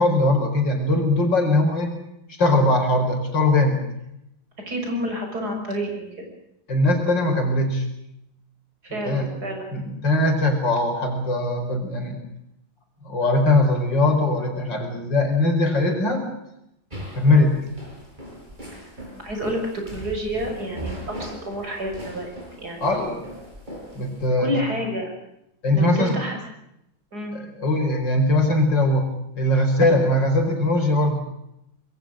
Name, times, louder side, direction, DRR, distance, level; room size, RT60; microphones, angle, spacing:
voice 1, 0.0-1.9 2.3-3.8 6.7-7.9 9.0-9.3 9.7-12.2 13.0-16.3 17.2-17.6 22.8-23.2 24.0-24.5 25.6-26.2 27.6-29.1 29.4-31.2, left 2 dB, 65° left, 4 dB, 5.4 m, -20 dB
voice 2, 4.6-6.3 8.8-9.7 17.2-17.5 18.7-18.9 19.2-23.0 24.4-25.1 25.7-26.4 27.1-27.4, equal, 50° right, 2 dB, 6.7 m, -29 dB
sound 1, 16.9-24.3, right 1 dB, 20° right, 6.4 m, -39 dB
26.0 x 22.0 x 6.4 m, 0.81 s
omnidirectional pair, 2.1 m